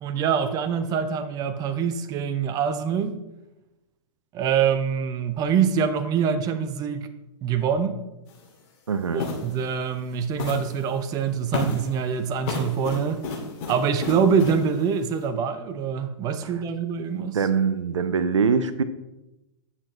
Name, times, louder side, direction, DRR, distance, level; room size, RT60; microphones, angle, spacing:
voice 1, 0.0-3.2 4.3-7.1 7.4-8.0 9.1-13.2 13.7-17.4, right 7 dB, 25° right, 10 dB, 0.6 m, -25 dB
sound 1, 8.3-8.4 9.2-9.5 10.4-10.8 11.5-11.9 12.4-14.6, left 3 dB, 40° left, 2.3 m, -31 dB
voice 2, 8.9-9.2 16.4-16.5 17.1-18.8, right 5 dB, 75° right, 12 dB, 0.6 m, -23 dB
9.9 x 6.6 x 3.1 m, 0.97 s
figure-of-eight pair, 110°, 16 cm